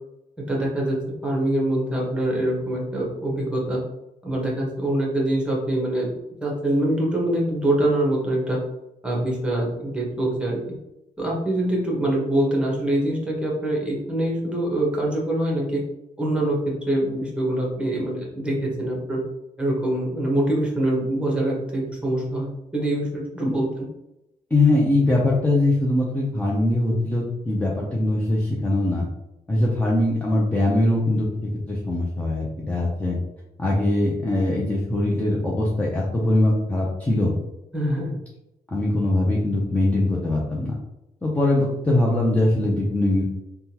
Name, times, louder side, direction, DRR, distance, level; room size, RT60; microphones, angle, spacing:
voice 1, 0.5-1.0 1.2-3.8 4.2-6.1 6.4-8.6 9.0-10.7 11.2-15.8 16.2-19.2 19.6-23.7 37.7-38.1, right 1 dB, 5° right, -3 dB, 1.1 m, -24 dB
voice 2, 24.5-29.1 29.5-33.2 33.6-37.3 38.7-40.8 41.2-43.2, left 1 dB, 10° left, -4 dB, 0.6 m, -22 dB
3.5 x 2.2 x 2.8 m, 0.90 s
cardioid pair, 105°, 15 cm